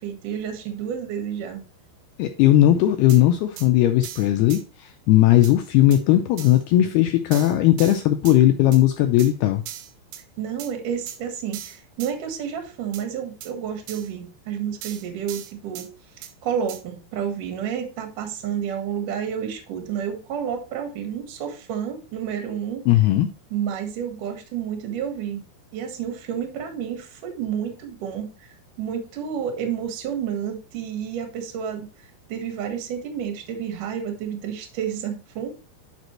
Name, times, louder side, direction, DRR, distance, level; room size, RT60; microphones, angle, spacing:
voice 1, 0.0-1.6 10.4-15.9 16.2-22.9 23.5-25.4 25.7-35.5, right 8 dB, 60° right, 4 dB, 2.6 m, -30 dB
voice 2, 2.2-9.6 22.9-23.3, left 13 dB, 85° left, 6 dB, 2.3 m, -18 dB
sound 1, 3.1-3.2 3.6-3.7 4.0-4.6 5.4-5.5 5.9-6.0 6.4-6.6 7.3-8.4 8.7-8.8 9.2-9.3 9.7-10.2 10.6-10.7 11.1-11.2 11.5-12.1 12.9-13.0 13.4-13.5 13.9-14.1 14.8-15.9 16.2-16.3 16.7-16.8, right 11 dB, 85° right, 3.4 m, -38 dB
10.5 x 5.2 x 3.1 m, 0.35 s
omnidirectional pair, 5.2 m